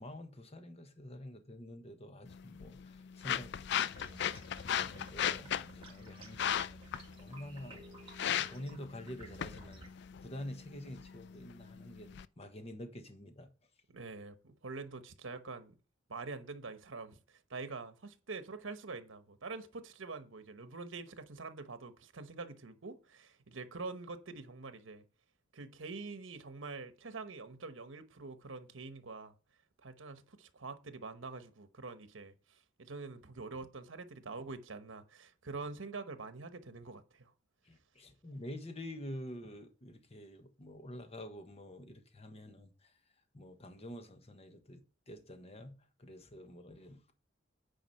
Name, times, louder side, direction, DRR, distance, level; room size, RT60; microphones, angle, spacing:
voice 1, 0.0-4.2 4.6-6.8 7.1-7.8 8.2-9.9 10.2-13.5 37.6-42.9 43.3-47.1, left 1 dB, 30° left, 1.2 m, -48 dB
sound 1, 2.3-12.2, left 9 dB, 60° left, 0.4 m, -38 dB
sound 2, 3.9-9.9, right 2 dB, 30° right, 2.2 m, -54 dB
voice 2, 13.9-15.7 16.1-25.0 25.5-29.3 29.8-37.3, right 3 dB, 85° right, 1.0 m, -45 dB
9.2 x 5.0 x 5.7 m
head